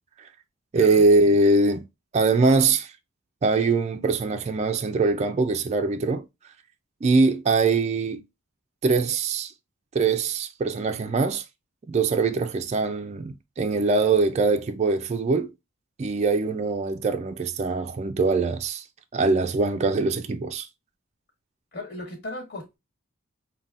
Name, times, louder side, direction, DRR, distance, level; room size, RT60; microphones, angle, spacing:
voice 1, 0.7-1.8 2.1-2.9 3.4-6.2 7.0-8.2 8.8-9.5 9.9-11.4 11.9-15.5 16.0-18.8 19.1-20.7, right 3 dB, 30° right, 0.3 m, -22 dB
voice 2, 21.7-22.8, left 1 dB, 55° left, 1.6 m, -36 dB
5.3 x 2.2 x 2.4 m
head